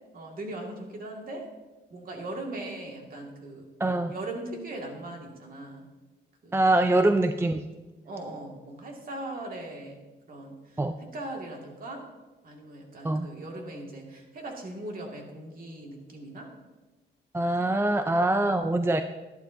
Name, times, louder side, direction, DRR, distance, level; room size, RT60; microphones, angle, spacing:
voice 1, 0.1-1.5 1.9-3.7 4.1-5.9 6.4-6.8 8.0-10.0 10.3-12.0 12.4-16.5, right 2 dB, 45° right, 0 dB, 2.1 m, -39 dB
voice 2, 3.8-4.1 6.5-7.6 10.8-11.0 13.0-13.3 17.3-19.0, right 1 dB, 10° right, 9 dB, 0.4 m, -24 dB
11.5 x 11.5 x 2.7 m, 1.2 s
cardioid pair, 90°, 20 cm